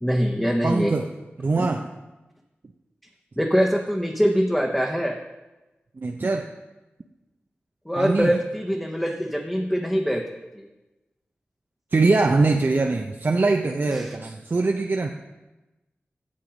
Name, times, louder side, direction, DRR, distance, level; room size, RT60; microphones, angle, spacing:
voice 1, 0.0-0.9 1.6-1.7 3.4-5.2 7.9-10.2 10.5-10.7 13.9-14.1, equal, 5° left, 0 dB, 1.0 m, -23 dB
voice 2, 0.6-1.1 1.4-1.9 6.0-6.5 8.0-8.4 11.9-15.1, right 3 dB, 55° right, 3 dB, 0.6 m, -22 dB
8.7 x 7.6 x 5.1 m, 1.1 s
cardioid pair, 40°, 4 cm